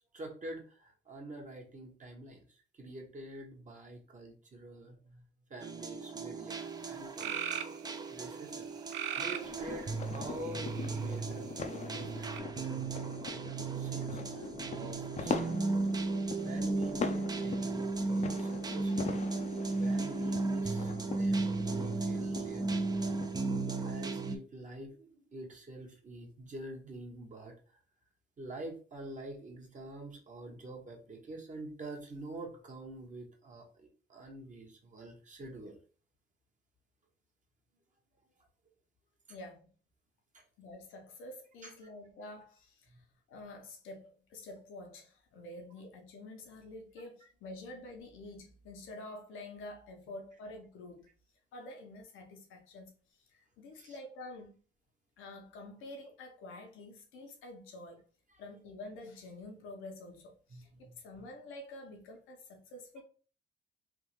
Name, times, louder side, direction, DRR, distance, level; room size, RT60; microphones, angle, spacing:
voice 1, 0.1-7.3 8.1-8.7 9.2-15.9 16.4-19.2 19.7-22.8 23.8-27.8 28.4-35.8 40.3-40.4 41.6-41.7 42.9-43.0 47.2-47.3 53.7-54.0 60.5-61.0, right 2 dB, 40° right, 1.1 m, -47 dB
sound 1, 5.6-24.4, right 3 dB, 20° right, 0.4 m, -35 dB
sound 2, 6.5-6.6 7.2-7.8 8.9-9.5 10.4-11.0 12.3-12.4, right 9 dB, 75° right, 0.4 m, -37 dB
sound 3, 9.4-23.9, left 5 dB, 35° left, 0.5 m, -42 dB
voice 2, 39.3-39.7 40.6-51.1 51.5-54.6 55.2-58.0 58.4-63.0, left 2 dB, 90° left, 1.0 m, -48 dB
3.5 x 2.5 x 3.0 m
cardioid pair, 90°, 20 cm